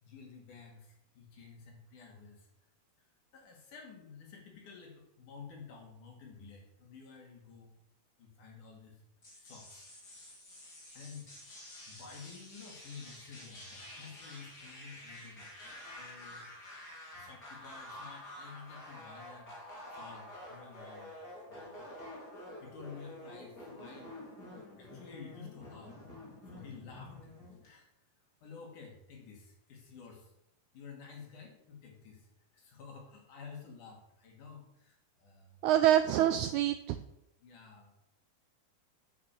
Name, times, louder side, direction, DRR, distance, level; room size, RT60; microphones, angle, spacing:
voice 1, 0.0-2.5 3.3-7.7 8.2-9.0 9.4-10.1 10.9-11.3 11.9-15.5 16.0-16.5 17.1-21.1 21.5-21.8 22.6-24.2 24.8-26.0 26.5-27.2 27.6-27.9 28.4-30.3 30.7-32.3 32.5-35.6 37.4-37.9, left 5 dB, 65° left, 0 dB, 3.6 m, -51 dB
sound 1, 9.2-27.7, left 1 dB, 30° left, 3.0 m, -49 dB
voice 2, 35.6-37.0, right 12 dB, 90° right, 10 dB, 1.7 m, -26 dB
9.1 x 6.6 x 7.1 m, 0.83 s
omnidirectional pair, 4.0 m